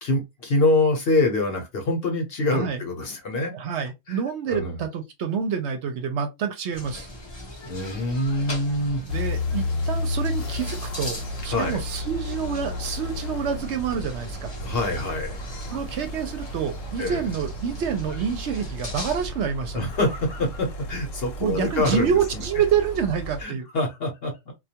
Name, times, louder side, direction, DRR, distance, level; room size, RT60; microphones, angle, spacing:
voice 1, 0.0-3.5 4.1-4.2 4.5-4.8 7.6-9.0 11.4-11.8 14.6-15.4 17.0-17.2 19.7-22.4 23.4-24.5, left 2 dB, 55° left, 0.9 m, -25 dB
voice 2, 2.5-2.8 3.5-7.1 9.1-11.2 11.4-14.5 15.7-19.9 21.4-23.7, right 7 dB, 65° right, 0.8 m, -27 dB
sound 1, 6.7-19.3, left 1 dB, 35° left, 0.4 m, -39 dB
sound 2, 9.1-23.4, left 1 dB, 85° left, 1.0 m, -33 dB
2.2 x 2.2 x 2.7 m
omnidirectional pair, 1.3 m